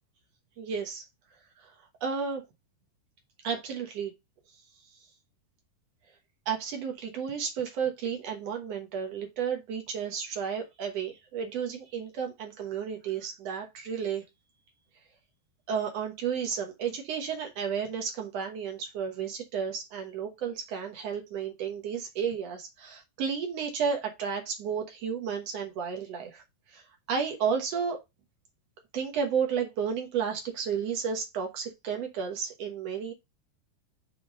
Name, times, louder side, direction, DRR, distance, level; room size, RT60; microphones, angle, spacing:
voice 1, 0.6-1.0 2.0-2.4 3.4-4.1 6.4-14.2 15.7-26.4 26.7-26.8 27.1-28.0 28.9-33.1, right 6 dB, 80° right, 1.4 m, -32 dB
7.7 x 3.8 x 4.8 m
omnidirectional pair, 4.8 m